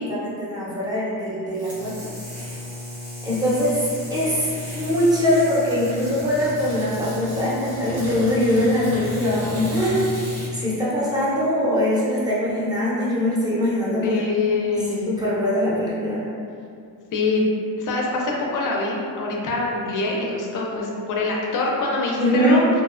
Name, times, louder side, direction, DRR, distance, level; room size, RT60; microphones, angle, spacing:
voice 1, 0.1-1.9 3.2-10.0 10.5-14.2 14.7-16.2 22.2-22.6, left 1 dB, 10° right, -8 dB, 0.6 m, -22 dB
sound 1, 1.5-10.5, left 1 dB, 75° right, 1.3 m, -33 dB
voice 2, 14.0-15.1 17.1-22.7, left 3 dB, 55° left, -2 dB, 0.4 m, -24 dB
2.7 x 2.0 x 2.4 m, 2.4 s
cardioid pair, 130°, 39 cm